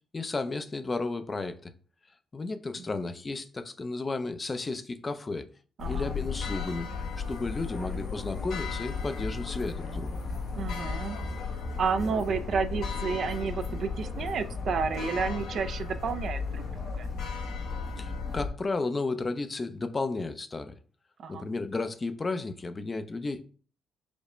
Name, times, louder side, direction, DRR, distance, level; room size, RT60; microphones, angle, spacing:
voice 1, 0.1-1.7 2.3-5.5 5.8-6.9 7.3-10.1 18.0-20.7 21.3-23.4, left 3 dB, 30° left, 0.5 m, -33 dB
sound 1, 5.8-18.5, left 4 dB, 80° left, 1.4 m, -34 dB
voice 2, 10.6-11.2 11.8-16.6 16.9-17.1 21.2-21.5, right 5 dB, 60° right, 0.4 m, -31 dB
5.1 x 2.1 x 4.8 m
cardioid pair, 80°, 0 cm